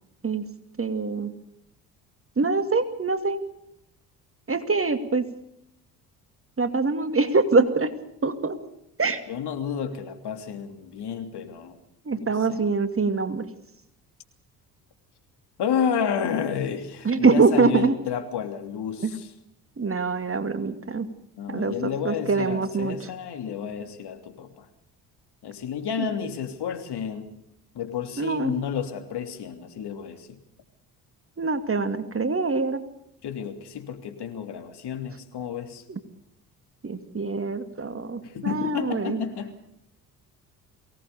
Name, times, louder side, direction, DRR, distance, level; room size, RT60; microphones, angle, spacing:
voice 1, 0.8-1.3 2.4-3.4 4.5-5.3 6.6-7.9 8.2-8.6 9.0-9.2 12.1-13.5 17.0-18.0 19.0-19.2 19.8-21.1 21.5-23.0 26.0-26.1 28.2-28.5 31.4-32.8 35.9-36.0 36.8-39.2, right 4 dB, 25° right, 10 dB, 2.5 m, -24 dB
voice 2, 9.3-11.8 12.1-12.6 15.6-19.3 21.4-24.7 25.4-27.3 27.7-30.4 33.2-35.8 38.2-39.5, left 7 dB, 55° left, 7 dB, 3.1 m, -31 dB
23.5 x 18.5 x 6.8 m, 0.80 s
hypercardioid pair, 50°, 48 cm